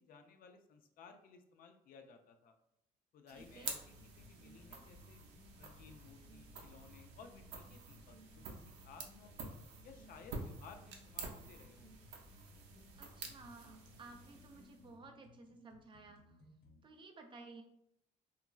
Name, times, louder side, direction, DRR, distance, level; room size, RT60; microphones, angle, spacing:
voice 1, 0.0-2.5 3.1-5.2 5.6-8.4 8.8-9.5 9.8-12.0, left 5 dB, 55° left, 6 dB, 0.4 m, -58 dB
voice 2, 3.3-3.7 13.0-16.2 16.8-17.6, right 3 dB, 30° right, 4 dB, 0.4 m, -55 dB
sound 1, 3.3-15.0, right 4 dB, 85° right, 0.5 m, -50 dB
sound 2, 3.9-16.8, left 3 dB, 75° left, 1.1 m, -62 dB
2.9 x 2.4 x 2.2 m, 0.78 s
cardioid pair, 110°, 17 cm